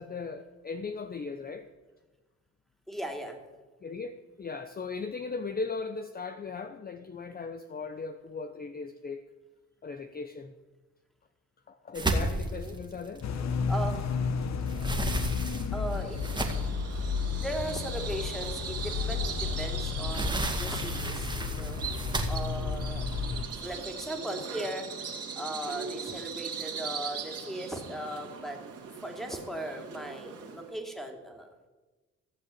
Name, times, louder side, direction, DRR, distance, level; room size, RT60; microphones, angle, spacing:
voice 1, 0.0-1.7 3.8-9.2 9.8-10.5 11.7-13.3 23.5-23.7 24.3-24.7 29.3-29.4, left 4 dB, 30° left, 8 dB, 0.8 m, -38 dB
voice 2, 2.9-3.4 12.5-12.8 13.7-14.1 15.7-16.5 17.3-21.8 22.3-23.0 23.6-24.9 25.4-28.6 29.0-31.5, right 1 dB, ahead, 3 dB, 2.8 m, -38 dB
sound 1, 11.9-14.1 14.5-16.9 17.5-17.6 18.1-18.2 19.6-23.9, right 2 dB, 15° right, 2.2 m, -33 dB
sound 2, 13.2-23.4, left 5 dB, 60° left, 1.2 m, -32 dB
Bird vocalization bird call bird song, 15.9-30.7, right 6 dB, 55° right, 2.7 m, -40 dB
15.5 x 7.5 x 8.4 m, 1.2 s
cardioid pair, 90°, 30 cm